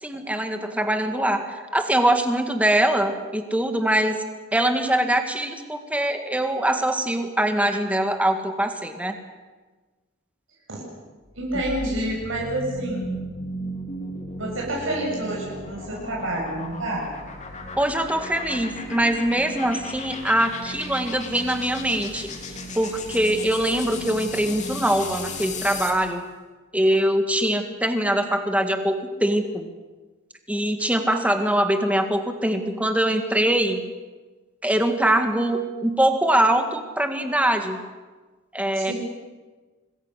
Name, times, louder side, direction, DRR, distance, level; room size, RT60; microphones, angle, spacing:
voice 1, 0.0-4.2 4.5-9.1 11.5-11.6 17.8-26.2 26.7-29.7 30.5-33.8 34.6-37.8 38.5-38.9, right 1 dB, 5° right, 6 dB, 1.9 m, -23 dB
sound 1, 11.3-26.1, left 1 dB, 35° left, 3.0 m, -35 dB
voice 2, 11.4-13.2 14.3-17.1 38.7-38.9, right 1 dB, 70° right, -3 dB, 6.9 m, -28 dB
26.0 x 21.0 x 6.7 m, 1.3 s
head